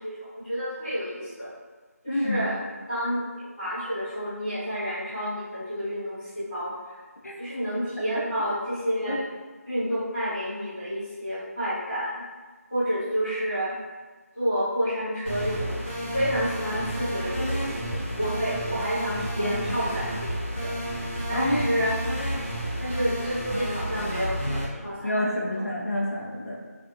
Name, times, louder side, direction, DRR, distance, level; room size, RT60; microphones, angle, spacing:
voice 1, 0.0-1.5 2.0-2.6 2.9-7.0 7.4-9.2 9.7-12.1 12.7-13.8 14.3-15.7 16.0-20.7 21.3-22.0 22.8-25.6, equal, 10° left, -20 dB, 1.0 m, -30 dB
voice 2, 2.1-2.4 7.2-7.4 9.1-9.2 19.4-19.6 21.3-21.7 25.0-26.6, left 1 dB, 70° left, -3 dB, 0.7 m, -28 dB
sound 1, 15.2-24.6, equal, 45° left, 1.0 m, -31 dB
2.5 x 2.4 x 2.7 m, 1.3 s
figure-of-eight pair, 180°, 9 cm